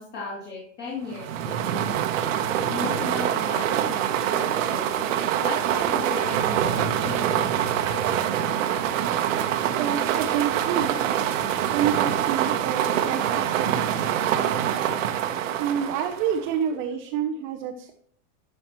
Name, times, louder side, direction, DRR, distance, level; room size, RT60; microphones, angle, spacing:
voice 1, 0.0-1.8 2.6-8.2, left 3 dB, 30° left, -6 dB, 2.6 m, -36 dB
sound 1, 1.1-16.5, right 10 dB, 75° right, 1.0 m, -25 dB
voice 2, 9.7-11.0 11.7-14.9 15.6-17.9, right 8 dB, 35° right, 3 dB, 0.6 m, -29 dB
11.5 x 5.8 x 3.0 m, 0.62 s
supercardioid pair, 160°, 39 cm